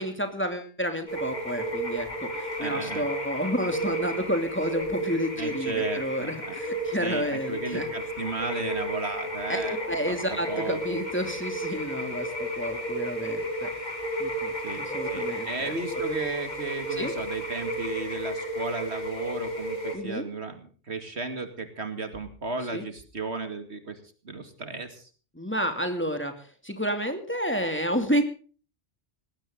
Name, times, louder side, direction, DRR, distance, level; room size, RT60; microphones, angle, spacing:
voice 1, 0.0-7.9 9.5-9.6 9.9-13.7 14.2-15.7 16.9-17.1 19.9-20.2 22.7-22.8 25.3-28.2, equal, 10° left, 6 dB, 2.6 m, -30 dB
sound 1, 1.1-19.9, right 1 dB, 40° left, 3.4 m, -33 dB
voice 2, 2.6-3.1 5.4-6.6 7.0-10.2 10.5-11.0 14.6-14.8 15.1-24.0 24.2-25.1, right 3 dB, 65° right, 8 dB, 2.5 m, -34 dB
19.5 x 16.5 x 3.8 m, 0.39 s
omnidirectional pair, 1.2 m